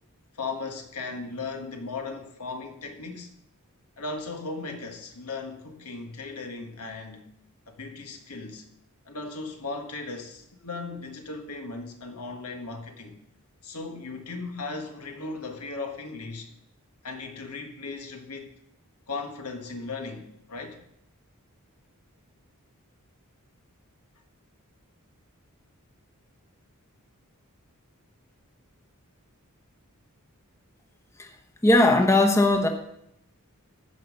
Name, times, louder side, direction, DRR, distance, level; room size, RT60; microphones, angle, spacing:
voice 1, 0.3-3.3 4.0-7.3 7.8-8.7 9.0-13.2 13.6-16.5 17.0-18.5 19.1-20.8, left 3 dB, 85° left, 1.6 m, -37 dB
voice 2, 31.6-32.7, left 2 dB, 15° left, 0.9 m, -19 dB
14.5 x 5.5 x 5.3 m
head